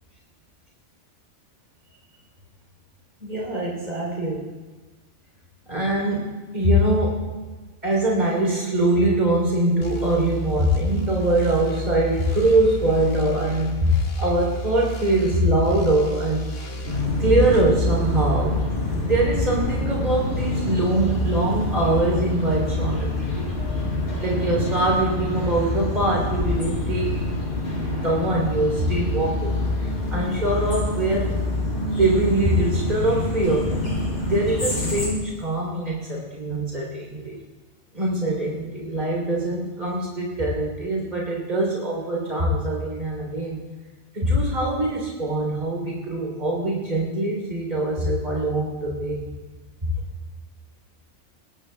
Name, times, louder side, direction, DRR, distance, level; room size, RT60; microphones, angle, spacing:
voice 1, 3.2-4.5 5.7-7.3 7.8-16.5 17.2-18.6 19.0-23.1 23.3-23.5 24.2-27.2 27.9-29.5 29.8-31.4 32.0-33.7 34.2-37.4 37.9-43.6 44.1-49.2 49.8-49.9, right 1 dB, 35° right, -2 dB, 3.9 m, -23 dB
sound 1, 9.8-17.7, right 1 dB, 85° left, 1.8 m, -31 dB
sound 2, 16.8-35.1, left 2 dB, 45° left, 4.5 m, -26 dB
23.0 x 20.5 x 2.4 m, 1.3 s
omnidirectional pair, 1.2 m